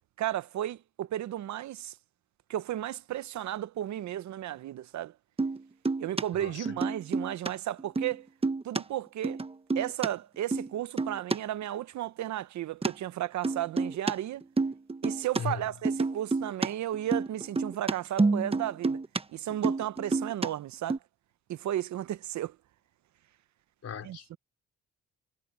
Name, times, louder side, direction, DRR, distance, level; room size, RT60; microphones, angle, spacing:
voice 1, 0.2-1.9 2.5-5.1 6.0-8.3 8.6-9.4 9.7-14.4 15.0-19.0 19.3-21.0 21.5-22.6 24.0-24.4, right 12 dB, 70° right, 0.8 m, -34 dB
sound 1, 5.4-5.6 5.9-6.2 6.7-7.5 7.8-8.1 8.4-8.8 9.2-10.1 10.5-10.7 11.0-11.4 12.8-12.9 13.4-14.1 14.4-15.4 15.9-16.7 16.9-19.2 19.5-20.5 20.9-21.0, right 3 dB, 20° right, 1.1 m, -28 dB
voice 2, 6.3-6.7 15.4-15.8 23.8-24.4, left 7 dB, 55° left, 3.8 m, -37 dB
cardioid pair, 90°, 30 cm